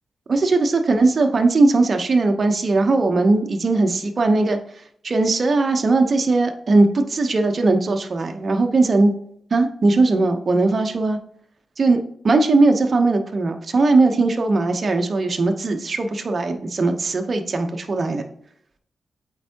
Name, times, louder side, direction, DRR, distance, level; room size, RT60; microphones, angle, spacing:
voice 1, 0.3-4.6 5.0-9.1 9.5-11.2 11.8-12.0 12.2-18.2, right 3 dB, 45° right, 5 dB, 0.8 m, -19 dB
7.9 x 4.4 x 2.8 m, 0.68 s
wide cardioid pair, 110°, 0 cm